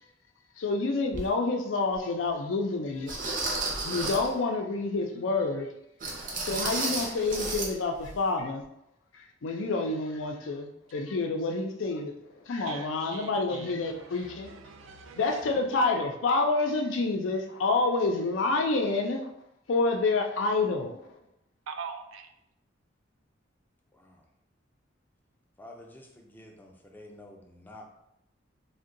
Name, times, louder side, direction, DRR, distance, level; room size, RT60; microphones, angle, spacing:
voice 1, 0.6-3.1 3.8-5.7 6.4-8.6 9.4-12.1 12.5-14.6 15.2-19.2 19.7-21.0, left 3 dB, 80° left, 3 dB, 0.4 m, -28 dB
sound 1, 1.1-1.3 1.9-2.0 3.1-4.3 6.0-7.7 8.0-8.2 8.6-8.7, right 2 dB, 45° right, 0.6 m, -32 dB
voice 2, 12.6-15.5 21.7-22.3, right 6 dB, 85° right, 7 dB, 0.4 m, -43 dB
voice 3, 23.9-24.2 25.6-27.8, left 1 dB, 10° left, 0 dB, 0.4 m, -49 dB
2.6 x 2.2 x 3.7 m, 0.80 s
head